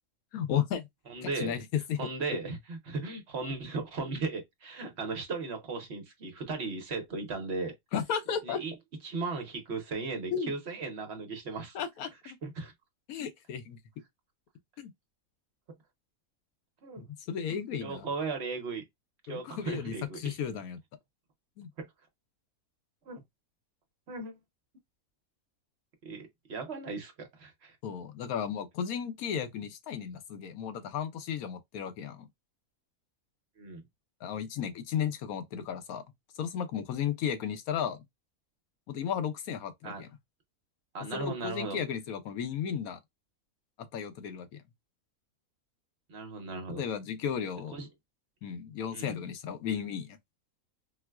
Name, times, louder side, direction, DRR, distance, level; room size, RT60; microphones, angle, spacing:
voice 1, 0.3-0.9 1.2-2.0 7.9-8.6 10.3-10.5 11.7-12.4 13.1-13.8 14.8-14.9 17.3-18.1 19.3-20.8 21.6-21.7 27.8-32.3 34.2-36.0 36.4-38.0 38.9-40.1 41.1-43.0 43.9-44.6 46.7-47.7 48.4-50.2, left 8 dB, 85° left, 1.1 m, -34 dB
voice 2, 1.1-1.6 2.0-7.7 8.4-8.7 9.0-11.8 12.4-12.7 16.8-17.0 17.8-18.8 19.3-20.4 21.8-21.9 23.1-23.2 24.1-24.4 26.0-27.8 33.6-33.8 39.8-40.0 40.9-41.8 46.1-46.8 47.7-47.9 48.9-49.1, right 3 dB, 55° right, 0.9 m, -36 dB
4.4 x 2.1 x 2.2 m
omnidirectional pair, 1.5 m